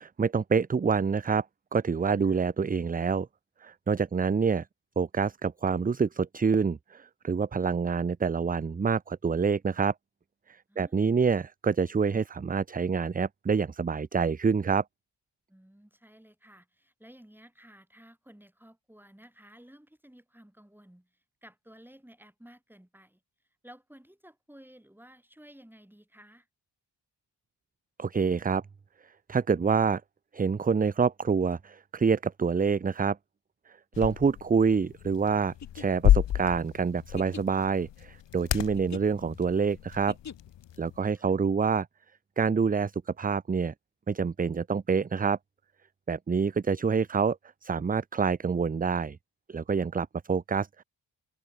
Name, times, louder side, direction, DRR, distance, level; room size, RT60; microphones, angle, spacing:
voice 1, 0.0-1.5 1.7-3.3 3.6-4.7 5.0-9.9 10.5-14.8 28.0-28.6 29.3-30.0 30.3-33.2 34.0-40.2 40.8-41.9 42.4-43.7 44.1-45.4 46.1-47.4 47.6-49.2 49.5-50.8, right 5 dB, 20° right, 0.5 m, -27 dB
voice 2, 10.7-11.2 15.5-21.1 21.4-23.2 23.6-26.5 41.0-41.3, equal, 5° right, 5.9 m, -54 dB
sound 1, 33.9-41.0, left 12 dB, 75° left, 0.9 m, -31 dB
sound 2, 35.6-40.7, left 7 dB, 40° left, 1.0 m, -46 dB
cardioid pair, 70°, 44 cm